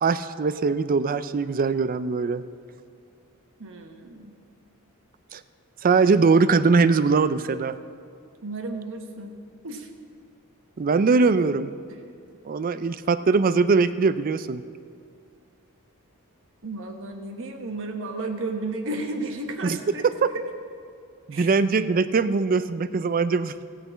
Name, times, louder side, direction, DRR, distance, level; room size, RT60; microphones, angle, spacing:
voice 1, 0.0-2.4 5.3-5.4 5.8-7.7 10.8-11.7 12.4-14.6 19.6-19.8 20.0-20.3 21.3-23.6, right 4 dB, 40° right, 14 dB, 0.4 m, -21 dB
voice 2, 3.6-4.3 8.4-9.3 9.6-9.9 11.9-12.2 16.6-20.0 21.3-21.5, right 2 dB, 60° right, 4 dB, 1.2 m, -33 dB
15.0 x 5.8 x 8.1 m, 2.3 s
head